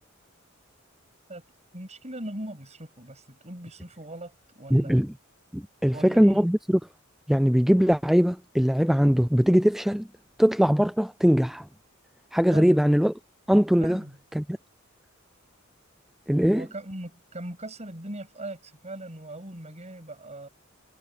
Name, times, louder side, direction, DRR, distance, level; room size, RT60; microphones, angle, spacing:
voice 1, 1.7-5.0 5.9-6.4 12.5-12.8 13.8-14.2 16.5-20.5, right 1 dB, 35° right, 7.2 m, -40 dB
voice 2, 4.7-5.1 5.5-6.8 7.3-10.1 10.4-11.7 12.3-13.1 13.5-14.0 14.3-14.4 16.3-16.7, equal, ahead, 0.3 m, -21 dB
head